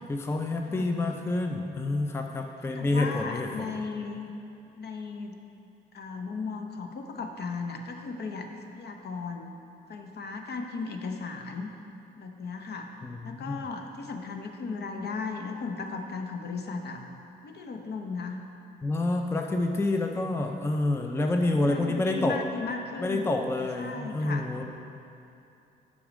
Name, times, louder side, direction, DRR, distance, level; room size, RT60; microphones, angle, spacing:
voice 1, 0.1-3.7 13.0-13.7 18.8-22.4 23.0-24.6, left 2 dB, 10° left, 4 dB, 0.5 m, -28 dB
voice 2, 2.7-4.3 4.7-5.4 5.9-8.5 8.8-9.5 9.9-11.7 12.2-12.9 13.2-17.0 17.4-18.4 21.4-23.3 23.8-24.5, left 4 dB, 55° left, 4 dB, 0.8 m, -36 dB
6.9 x 6.3 x 5.0 m, 2.7 s
cardioid pair, 90°, 20 cm